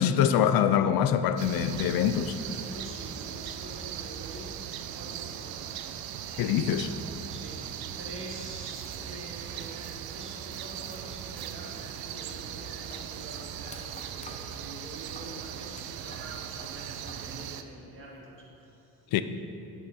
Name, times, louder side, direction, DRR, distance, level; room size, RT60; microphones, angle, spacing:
voice 1, 0.0-2.4 6.4-6.9 19.1-19.2, left 9 dB, 65° left, 0.5 m, -24 dB
sound 1, 1.4-17.6, right 9 dB, 65° right, 0.6 m, -39 dB
voice 2, 2.4-4.6 4.9-6.0 7.3-7.6 7.9-18.9, right 1 dB, 30° right, 1.8 m, -46 dB
sound 2, 12.2-17.3 17.5-18.4, left 2 dB, 20° left, 0.8 m, -50 dB
9.2 x 7.3 x 4.2 m
cardioid pair, 140°, 39 cm